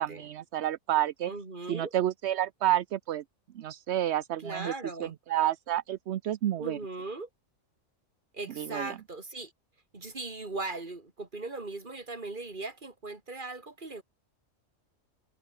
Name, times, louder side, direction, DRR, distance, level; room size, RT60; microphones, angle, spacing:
voice 1, 0.0-1.3 1.7-3.2 3.5-4.7 5.0-6.8 8.6-9.0, right 12 dB, 65° right, 0.9 m, -30 dB
voice 2, 1.3-1.9 4.4-5.2 6.6-7.3 8.3-9.5 9.9-14.0, right 3 dB, 35° right, 2.9 m, -38 dB
omnidirectional pair, 1.4 m